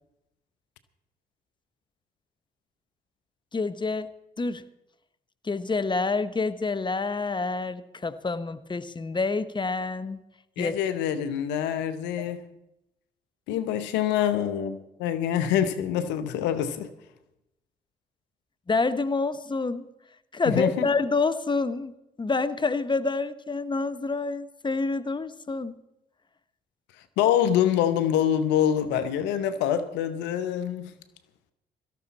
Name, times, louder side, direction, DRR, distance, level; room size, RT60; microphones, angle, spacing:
voice 1, 3.5-4.1 4.4-4.6 5.4-10.2 10.6-10.8 12.2-12.3 18.7-19.9 20.3-21.9 22.2-25.7, left 3 dB, 25° left, 1.1 m, -27 dB
voice 2, 10.6-12.4 13.5-16.9 20.5-20.9 27.2-30.9, left 10 dB, 90° left, 0.9 m, -25 dB
17.5 x 13.5 x 4.2 m
supercardioid pair, 55°, 18 cm